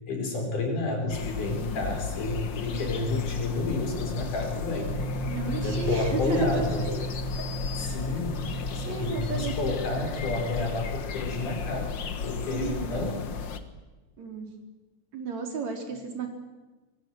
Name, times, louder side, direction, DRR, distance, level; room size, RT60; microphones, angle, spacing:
voice 1, 0.1-4.9 5.5-6.8 7.7-11.9 12.2-13.1, left 3 dB, 85° left, 3 dB, 6.3 m, -30 dB
sound 1, 1.1-13.6, left 5 dB, 45° left, 1.6 m, -34 dB
sound 2, 4.8-11.6, right 2 dB, 20° right, 3.0 m, -38 dB
voice 2, 5.2-7.0 8.8-9.6 12.5-13.1 14.2-14.5 15.1-16.3, right 4 dB, 65° right, 4 dB, 4.9 m, -33 dB
26.0 x 23.0 x 7.8 m, 1.2 s
omnidirectional pair, 3.5 m